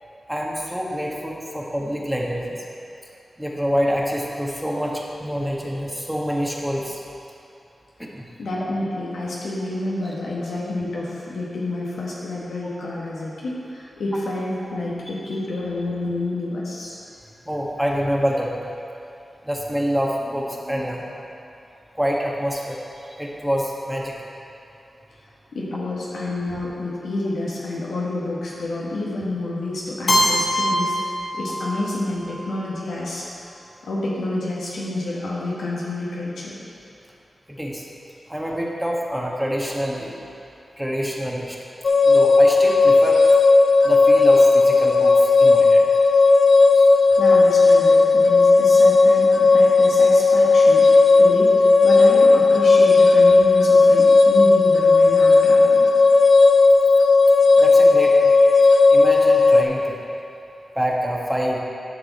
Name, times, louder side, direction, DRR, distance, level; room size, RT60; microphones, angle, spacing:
voice 1, 0.3-2.6 3.4-7.0 8.0-8.3 10.0-10.1 17.4-18.7 19.4-21.1 21.9-24.3 37.5-37.8 38.3-40.2 40.8-41.6 42.0-43.2 43.8-45.9 46.7-46.9 57.6-58.4 58.9-60.0 60.7-61.6, equal, 5° right, -2 dB, 1.4 m, -26 dB
voice 2, 8.4-17.0 25.5-33.2 33.8-36.6 47.2-55.9, left 2 dB, 90° left, -6 dB, 1.6 m, -29 dB
Keyboard (musical), 30.1-32.0, equal, 45° left, 1.7 m, -22 dB
sound 1, 41.8-59.6, left 3 dB, 70° left, 0.5 m, -14 dB
10.0 x 6.0 x 4.3 m, 2.8 s
cardioid pair, 45°, 0 cm